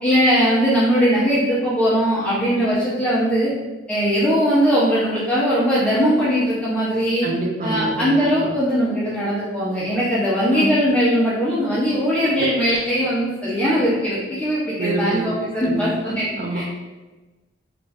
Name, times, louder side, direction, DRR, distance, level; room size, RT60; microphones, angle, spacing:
voice 1, 0.0-3.5 3.9-7.3 7.6-16.6, equal, 5° left, -10 dB, 0.6 m, -20 dB
voice 2, 7.2-8.5 10.5-10.7 12.2-12.5 14.8-15.3 15.6-16.6, right 2 dB, 45° right, 1 dB, 0.5 m, -27 dB
3.1 x 2.5 x 3.4 m, 1.2 s
head